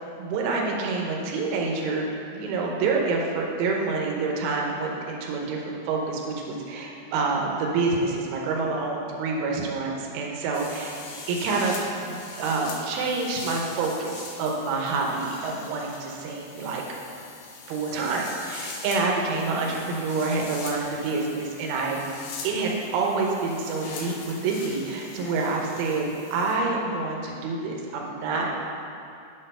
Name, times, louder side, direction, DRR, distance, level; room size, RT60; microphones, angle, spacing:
voice 1, 0.2-11.0 11.3-16.8 17.7-22.0 22.4-28.5, right 3 dB, 90° right, -1 dB, 3.4 m, -27 dB
sound 1, 10.5-26.5, left 4 dB, 80° left, 2.0 m, -41 dB
8.2 x 6.6 x 5.4 m, 2.6 s
omnidirectional pair, 5.3 m